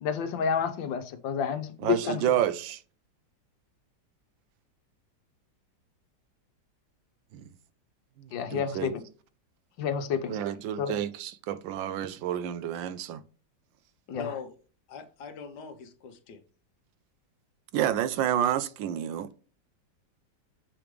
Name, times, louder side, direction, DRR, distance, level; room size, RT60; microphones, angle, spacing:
voice 1, 0.0-2.2 8.3-9.0 9.8-10.4 10.8-10.9 14.1-14.3, left 7 dB, 85° left, 1.6 m, -29 dB
voice 2, 1.8-2.8 7.3-7.4 8.2-8.9 10.3-13.2 17.7-19.3, right 11 dB, 85° right, 1.4 m, -29 dB
voice 3, 14.1-14.6 14.9-16.4, left 5 dB, 70° left, 1.4 m, -41 dB
7.1 x 5.1 x 3.1 m
omnidirectional pair, 2.0 m